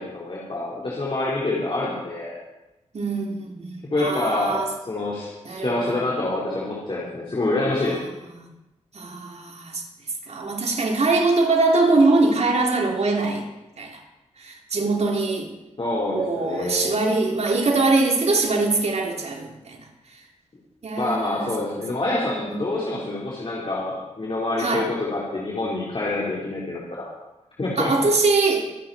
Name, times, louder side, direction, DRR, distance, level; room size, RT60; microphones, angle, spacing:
voice 1, 0.0-2.4 3.9-4.6 4.9-8.1 15.8-16.9 21.0-27.1 27.6-27.9, left 2 dB, 45° left, -6 dB, 4.2 m, -26 dB
voice 2, 2.9-4.7 5.4-6.0 8.3-8.5 8.9-9.8 10.2-13.4 13.8-14.0 14.4-15.5 16.1-19.8 20.8-21.5 22.3-22.6 23.0-23.2 24.6-24.9 27.8-28.7, right 3 dB, 60° right, 0 dB, 3.4 m, -22 dB
25.0 x 9.4 x 4.4 m, 1.0 s
cardioid pair, 50°, 13 cm